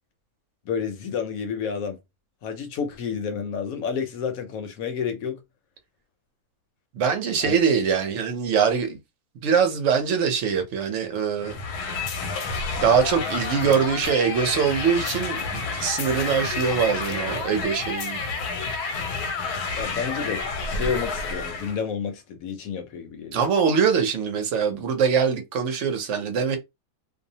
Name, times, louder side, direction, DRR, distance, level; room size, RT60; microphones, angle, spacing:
voice 1, 0.7-2.0 2.4-5.4 7.4-7.6 19.8-20.4 20.7-23.4, left 6 dB, 70° left, 1.0 m, -30 dB
voice 2, 6.9-9.0 9.4-11.6 12.8-18.2 23.3-26.6, right 6 dB, 60° right, 0.9 m, -23 dB
sound 1, 11.4-21.8, left 4 dB, 90° left, 1.1 m, -30 dB
2.6 x 2.0 x 2.7 m
omnidirectional pair, 1.6 m